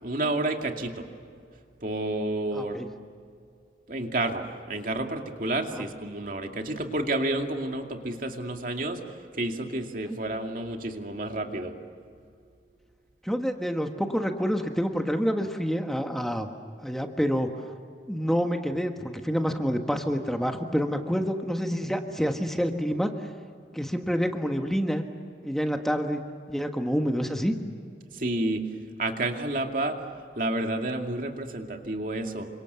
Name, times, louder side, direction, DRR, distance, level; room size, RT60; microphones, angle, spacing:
voice 1, 0.0-1.1 1.8-2.8 3.9-9.0 9.4-11.7 28.1-28.7 29.0-30.0 30.4-32.5, right 2 dB, 50° right, 3 dB, 2.5 m, -30 dB
voice 2, 2.5-2.9 5.8-5.9 10.1-10.2 13.2-16.5 16.8-17.5 18.1-23.1 23.7-25.0 25.4-26.2 26.5-27.6, equal, ahead, 4 dB, 1.4 m, -27 dB
29.0 x 26.0 x 7.0 m, 2.3 s
head